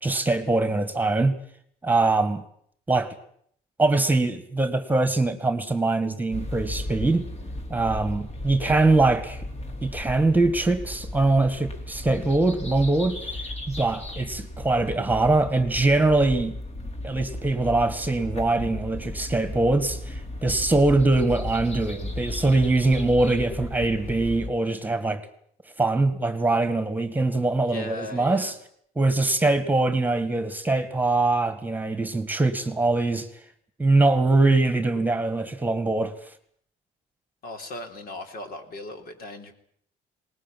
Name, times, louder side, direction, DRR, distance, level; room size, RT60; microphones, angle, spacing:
voice 1, 0.0-1.4 1.8-2.4 2.9-3.2 3.8-7.2 7.7-9.4 9.8-13.2 13.7-16.6 17.0-25.2 25.8-28.5 29.0-33.3 33.8-36.1, right 2 dB, 10° right, 11 dB, 2.0 m, -22 dB
sound 1, 6.3-24.5, left 1 dB, 40° left, 4.1 m, -35 dB
voice 2, 8.6-8.9 27.6-28.5 37.4-39.5, left 2 dB, 60° left, 6 dB, 3.8 m, -38 dB
20.0 x 19.5 x 9.3 m, 0.65 s
cardioid pair, 110°, 17 cm